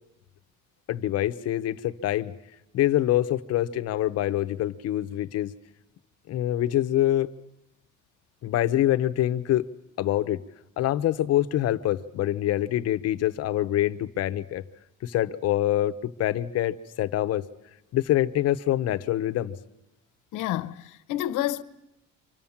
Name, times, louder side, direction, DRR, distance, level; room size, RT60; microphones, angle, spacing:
voice 1, 0.9-2.3 2.7-5.5 6.3-7.3 8.4-9.7 10.0-10.4 10.8-14.6 15.0-17.4 17.9-19.5, left 13 dB, 55° left, 0.9 m, -25 dB
voice 2, 20.3-21.6, left 13 dB, 75° left, 1.0 m, -29 dB
28.5 x 25.5 x 7.3 m
cardioid pair, 175°, 31 cm